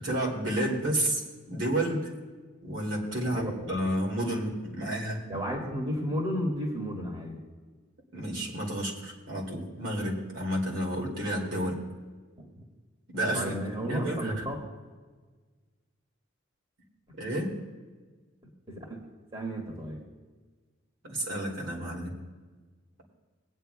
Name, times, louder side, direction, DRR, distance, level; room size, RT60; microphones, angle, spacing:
voice 1, 0.0-2.1 2.6-5.2 8.1-11.8 13.1-13.5 13.8-14.4 17.2-17.6 21.0-22.2, right 1 dB, 70° right, -2 dB, 2.5 m, -31 dB
voice 2, 3.4-3.8 5.3-7.4 12.4-12.6 13.3-14.6 18.7-19.1 19.3-20.0, equal, 25° right, -1 dB, 1.8 m, -33 dB
20.0 x 9.4 x 2.3 m, 1.4 s
head